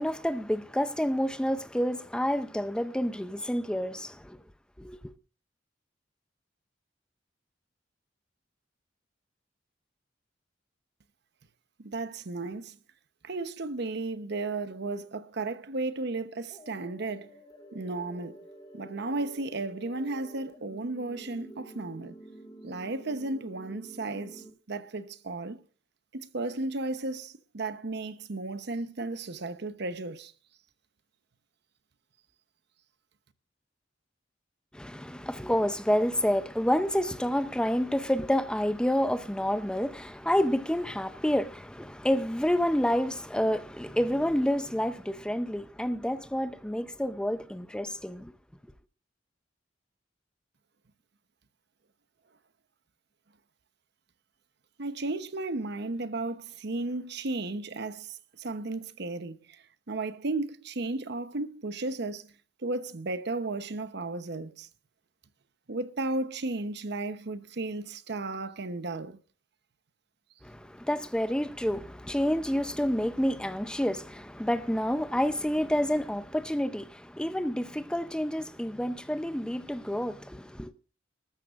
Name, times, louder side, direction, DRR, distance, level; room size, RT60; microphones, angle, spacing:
voice 1, 0.0-4.4 4.8-5.1 34.7-48.3 70.4-80.7, equal, 5° left, 0.6 m, -29 dB
voice 2, 11.8-12.8 13.2-17.3 17.7-18.4 18.7-22.1 22.6-25.6 26.1-30.3 54.8-62.3 62.6-64.7 65.7-69.2, right 2 dB, 65° right, 0.9 m, -34 dB
sound 1, 16.5-24.5, right 1 dB, 30° left, 2.6 m, -49 dB
20.5 x 13.5 x 2.5 m
head